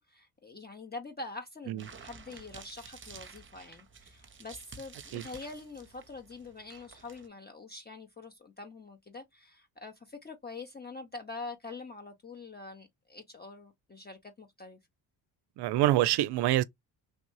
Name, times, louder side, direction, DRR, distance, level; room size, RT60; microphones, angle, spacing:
voice 1, 0.0-14.8, left 3 dB, 20° left, 0.8 m, -45 dB
sound 1, 1.8-7.3, right 5 dB, 25° right, 0.7 m, -51 dB
voice 2, 15.6-16.6, right 14 dB, 65° right, 0.5 m, -26 dB
3.3 x 2.5 x 3.0 m
supercardioid pair, 65°, 44 cm